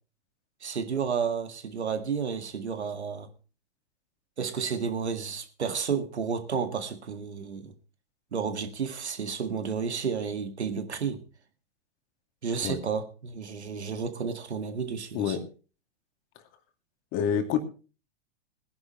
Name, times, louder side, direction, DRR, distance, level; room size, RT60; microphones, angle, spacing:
voice 1, 0.6-3.3 4.4-7.7 8.3-11.2 12.4-15.4, right 6 dB, 75° right, 2.1 m, -31 dB
voice 2, 17.1-17.6, left 8 dB, 40° left, 2.5 m, -27 dB
20.5 x 10.5 x 3.1 m
figure-of-eight pair, 100°, 33 cm